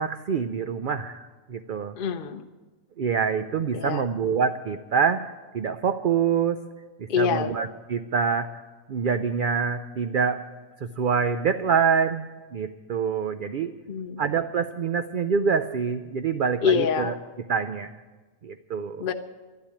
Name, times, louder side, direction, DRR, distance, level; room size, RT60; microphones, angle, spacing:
voice 1, 0.0-1.9 3.0-5.2 5.5-6.6 7.0-8.6 8.9-10.4 10.8-13.7 14.2-17.2 17.5-17.9 18.4-19.1, right 6 dB, 60° right, 9 dB, 0.5 m, -26 dB
voice 2, 2.0-2.4 3.7-4.0 7.1-7.5 13.9-14.2 16.6-17.1 19.0-19.1, left 7 dB, 50° left, 7 dB, 0.7 m, -25 dB
12.0 x 11.5 x 8.6 m, 1.3 s
omnidirectional pair, 1.4 m